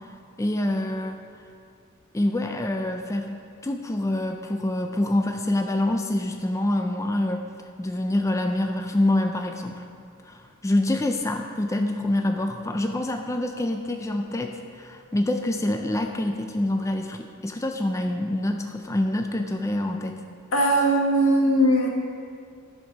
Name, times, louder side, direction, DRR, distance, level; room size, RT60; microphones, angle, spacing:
voice 1, 0.4-1.3 2.1-3.3 3.6-7.5 7.8-9.8 10.2-20.2, left 1 dB, 15° left, 4 dB, 0.4 m, -26 dB
voice 2, 20.5-21.9, right 1 dB, 80° left, 0 dB, 1.5 m, -19 dB
11.5 x 5.3 x 6.0 m, 2.3 s
head